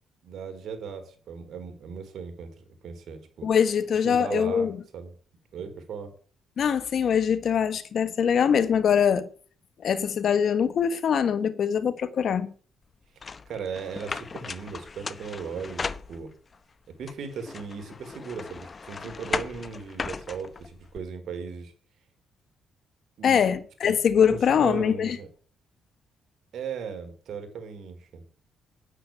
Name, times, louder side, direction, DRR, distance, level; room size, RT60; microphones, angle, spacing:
voice 1, 0.2-3.5 4.0-5.1 5.5-6.1 13.5-16.3 16.9-21.7 23.2-23.5 23.8-25.3 26.5-28.2, right 6 dB, 65° right, 4.1 m, -37 dB
voice 2, 3.4-4.8 6.6-9.3 9.8-12.5 23.2-25.2, left 7 dB, 60° left, 1.5 m, -23 dB
sound 1, 13.2-16.6 17.1-21.0, left 4 dB, 35° left, 0.9 m, -36 dB
9.9 x 9.6 x 8.9 m
cardioid pair, 90°, 0 cm